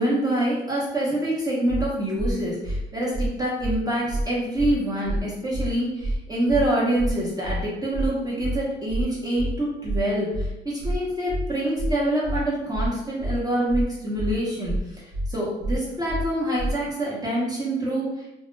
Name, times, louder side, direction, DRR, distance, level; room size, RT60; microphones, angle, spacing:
voice 1, 0.0-18.3, right 1 dB, 20° right, -6 dB, 0.8 m, -26 dB
sound 1, 1.7-1.8 2.2-2.3 2.6-2.8 3.1-3.3 3.6-3.8 4.1-4.2 4.6-4.7 5.0-5.2 5.5-5.7 6.0-6.2 6.5-6.6 7.0-7.1 7.4-7.6 7.9-8.1 8.4-8.6 8.9-9.0 9.4-9.5 9.8-10.0 10.3-10.5 10.8-11.0 11.3-11.4 11.8-11.9 12.2-12.4 12.7-12.9 13.2-13.4 13.7-13.8 14.2-14.3 14.6-14.8 15.1-15.3 15.6-15.8 16.1-16.2 16.6-16.7, right 1 dB, 55° right, 0.6 m, -27 dB
2.2 x 2.1 x 3.1 m, 0.91 s
cardioid pair, 90°, 20 cm